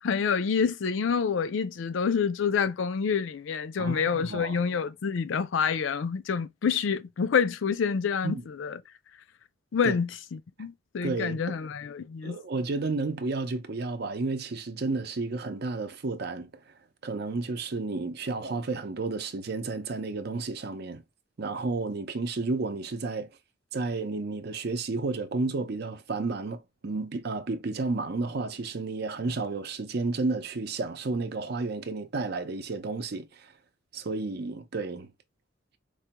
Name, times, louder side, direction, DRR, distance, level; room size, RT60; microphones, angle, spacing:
voice 1, 0.0-8.8 9.7-12.4, left 6 dB, 90° left, 0.4 m, -27 dB
voice 2, 3.8-4.6 8.2-8.4 9.8-9.9 11.0-11.6 12.2-16.6 17.0-21.0 21.4-23.3 23.7-33.5 33.9-35.1, right 3 dB, 60° right, 0.6 m, -32 dB
4.7 x 2.2 x 2.8 m
head